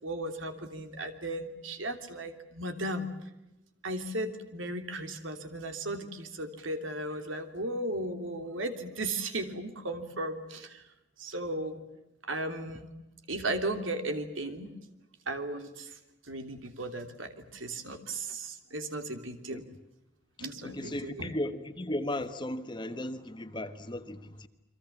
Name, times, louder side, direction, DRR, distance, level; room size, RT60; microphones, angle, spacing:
voice 1, 0.0-3.1 3.8-10.8 11.2-11.8 12.2-12.9 13.3-14.7 15.3-16.0 16.3-19.6 20.4-21.3, right 1 dB, 90° right, 7 dB, 3.1 m, -36 dB
voice 2, 20.6-24.5, left 1 dB, 25° left, 8 dB, 1.3 m, -36 dB
29.5 x 24.0 x 7.3 m, 0.92 s
head